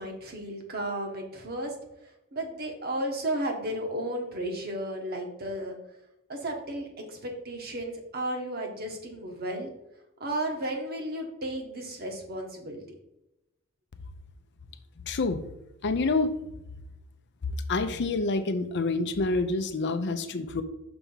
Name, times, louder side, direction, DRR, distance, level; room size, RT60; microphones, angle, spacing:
voice 1, 0.0-1.7 2.3-5.8 6.3-9.7 10.2-12.8, right 1 dB, 50° right, 1 dB, 1.3 m, -33 dB
voice 2, 15.1-15.4 15.8-16.3 17.7-20.6, left 3 dB, 55° left, 9 dB, 0.6 m, -27 dB
6.0 x 3.5 x 5.5 m, 0.90 s
head